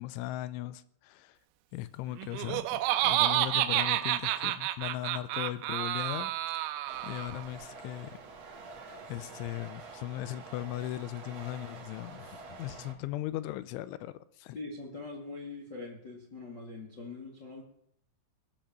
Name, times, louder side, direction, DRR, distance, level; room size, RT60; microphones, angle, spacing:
voice 1, 0.0-1.4 1.7-6.7 7.0-8.2 9.1-14.6, left 15 dB, 80° left, 2.8 m, -38 dB
Laughter, 2.2-7.4, right 14 dB, 85° right, 3.4 m, -30 dB
sound 1, 6.9-12.9, right 4 dB, 55° right, 1.8 m, -47 dB
voice 2, 14.5-17.6, left 3 dB, 55° left, 1.1 m, -42 dB
20.0 x 7.8 x 7.4 m
omnidirectional pair, 5.9 m